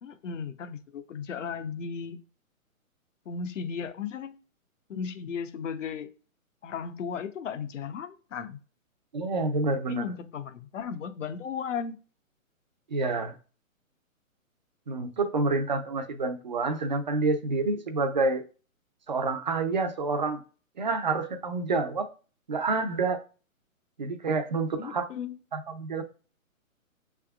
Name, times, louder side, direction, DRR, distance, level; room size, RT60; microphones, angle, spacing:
voice 1, 0.0-2.2 3.3-4.4 4.9-6.1 6.6-8.6 9.9-12.0 24.8-25.4, left 6 dB, 60° left, 9 dB, 0.8 m, -35 dB
voice 2, 9.1-10.0 12.9-13.3 14.9-18.4 19.1-20.4 20.8-22.1 22.5-23.2 24.0-25.1 25.5-26.0, right 3 dB, 35° right, 7 dB, 0.4 m, -28 dB
6.6 x 3.5 x 2.3 m, 0.37 s
hypercardioid pair, 160°, 42 cm